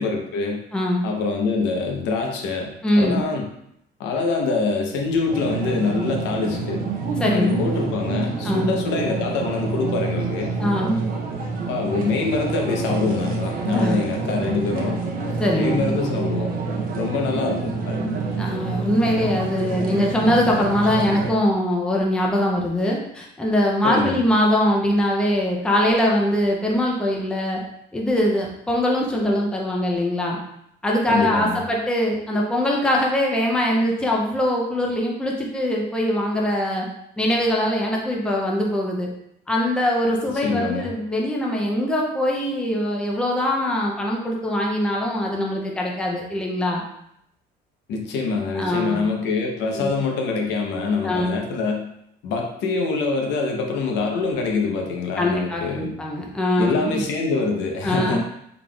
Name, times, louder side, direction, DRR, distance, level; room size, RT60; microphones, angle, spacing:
voice 1, 0.0-0.6 1.0-3.5 4.0-6.8 7.3-10.5 11.7-15.0 15.5-16.5 16.9-18.0 23.8-24.2 31.1-31.6 40.4-40.9 47.9-51.9 52.2-55.9 56.6-58.2, left 4 dB, 85° left, 1 dB, 0.7 m, -25 dB
voice 2, 0.7-1.0 2.8-3.3 7.2-7.6 8.4-8.8 10.6-11.0 13.7-14.0 15.4-16.0 18.4-27.6 27.9-30.4 30.8-36.9 37.2-39.1 39.5-46.8 48.5-49.1 49.7-50.0 51.0-51.5 55.2-57.1 57.8-58.2, left 1 dB, 5° left, -1 dB, 0.4 m, -22 dB
sound 1, 5.3-21.3, right 4 dB, 55° right, 0.6 m, -27 dB
3.8 x 3.4 x 2.3 m, 0.76 s
cardioid pair, 165°, 18 cm